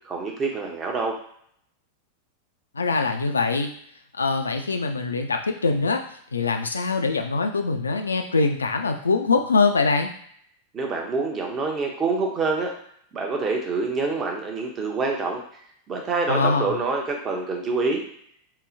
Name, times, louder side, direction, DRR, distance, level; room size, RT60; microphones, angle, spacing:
voice 1, 0.0-1.2 10.7-12.7 13.1-15.4 15.9-18.0, right 3 dB, 25° right, 1 dB, 0.7 m, -26 dB
voice 2, 2.7-3.7 4.1-6.0 6.3-10.1 16.3-16.7, left 4 dB, 75° left, 5 dB, 0.3 m, -23 dB
3.8 x 2.1 x 2.6 m, 0.65 s
figure-of-eight pair, 90°, 0 cm